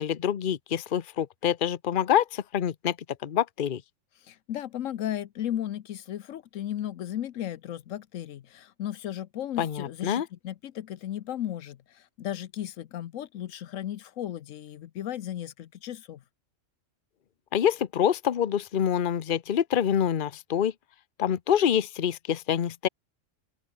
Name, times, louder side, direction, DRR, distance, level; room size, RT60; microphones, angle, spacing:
voice 1, 0.0-3.0 3.2-3.8 9.6-10.3 17.5-20.7 21.2-22.9, left 9 dB, 45° left, 0.9 m, -26 dB
voice 2, 4.2-16.2, left 11 dB, 80° left, 1.1 m, -35 dB
open air
omnidirectional pair, 1.3 m